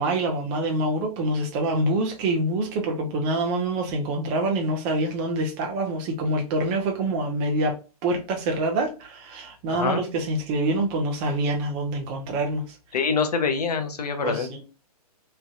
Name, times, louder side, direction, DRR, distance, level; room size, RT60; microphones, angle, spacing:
voice 1, 0.0-12.8 14.2-14.6, right 2 dB, 35° right, 0.5 m, -26 dB
voice 2, 9.7-10.0 12.9-14.6, left 5 dB, 80° left, 0.7 m, -25 dB
3.2 x 2.5 x 2.3 m
hypercardioid pair, 130°, 20 cm